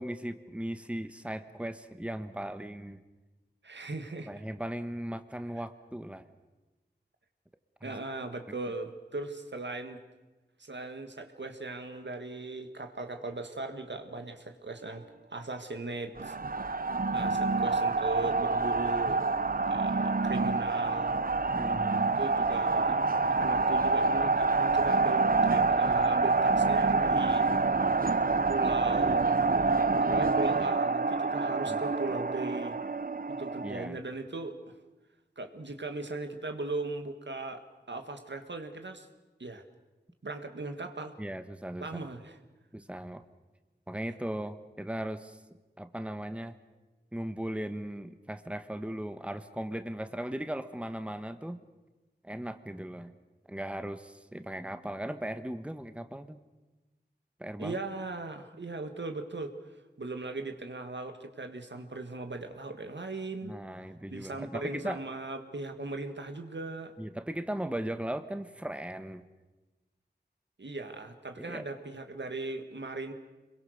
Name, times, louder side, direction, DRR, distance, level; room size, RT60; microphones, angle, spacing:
voice 1, 0.0-3.0 4.3-6.3 7.8-8.0 8.5-8.6 17.2-17.3 21.5-22.1 31.7-31.8 33.6-34.0 41.2-42.1 42.7-43.2 43.9-45.4 45.8-46.6 47.1-51.6 52.2-53.2 53.5-56.4 57.4-57.8 63.4-65.0 67.0-69.2 71.5-71.6, right 1 dB, 5° right, 10 dB, 1.2 m, -38 dB
voice 2, 3.6-4.4 7.8-10.0 10.6-16.8 17.1-19.2 19.7-21.2 22.2-23.0 23.3-27.5 28.5-29.3 30.0-32.8 33.3-34.6 35.4-39.1 39.4-39.6 40.2-41.2 41.8-42.4 57.6-59.6 60.0-63.5 64.1-66.9 70.6-73.1, right 2 dB, 85° right, 6 dB, 1.8 m, -38 dB
sound 1, 16.2-33.9, right 3 dB, 55° right, 0.7 m, -27 dB
26.5 x 22.0 x 6.6 m, 1.1 s
wide cardioid pair, 50°, 18 cm